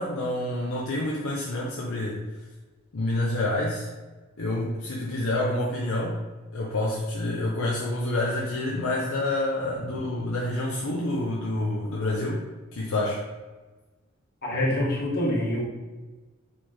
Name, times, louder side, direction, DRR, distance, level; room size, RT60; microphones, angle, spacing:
voice 1, 0.0-2.2 2.9-3.9 4.4-6.2 6.5-12.4 12.7-13.2, left 1 dB, 65° left, -4 dB, 0.6 m, -28 dB
voice 2, 14.4-15.6, left 1 dB, 50° left, -3 dB, 1.2 m, -25 dB
4.5 x 3.5 x 3.0 m, 1.2 s
head